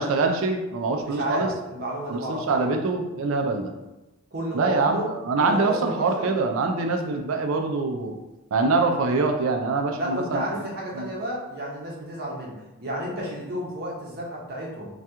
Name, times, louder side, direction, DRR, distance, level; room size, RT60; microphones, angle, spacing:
voice 1, 0.0-1.5 2.1-3.7 4.5-8.2 8.5-10.4 11.0-11.1, right 3 dB, 70° right, 4 dB, 0.4 m, -24 dB
voice 2, 1.0-2.7 4.3-6.3 9.9-12.6 12.8-14.9, equal, 45° right, -3 dB, 0.7 m, -32 dB
2.8 x 2.3 x 3.4 m, 0.99 s
head